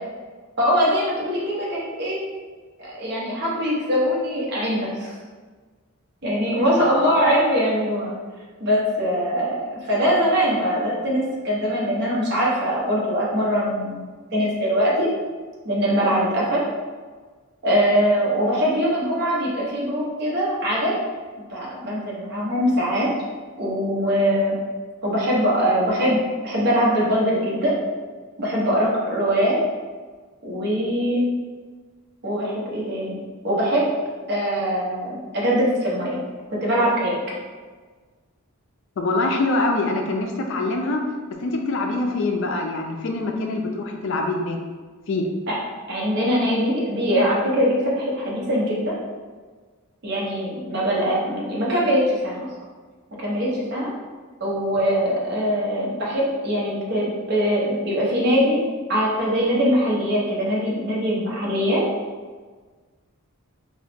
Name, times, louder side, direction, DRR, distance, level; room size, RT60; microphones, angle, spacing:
voice 1, 0.6-2.2 2.8-5.1 6.2-8.1 8.6-9.6 9.9-14.0 14.3-15.1 15.6-16.6 17.6-21.0 21.5-23.1 23.6-24.6 25.0-27.8 28.4-29.6 30.4-31.3 32.2-33.2 33.4-33.9 34.3-36.2 36.5-37.2 45.5-45.6 45.9-49.0 50.0-52.5 53.2-53.9 54.4-58.6 58.9-61.8, equal, 50° right, -5 dB, 0.8 m, -22 dB
voice 2, 6.8-7.1 39.0-41.0 41.3-44.6 45.1-45.3, left 2 dB, 55° left, 2 dB, 0.4 m, -24 dB
2.9 x 2.3 x 3.3 m, 1.4 s
head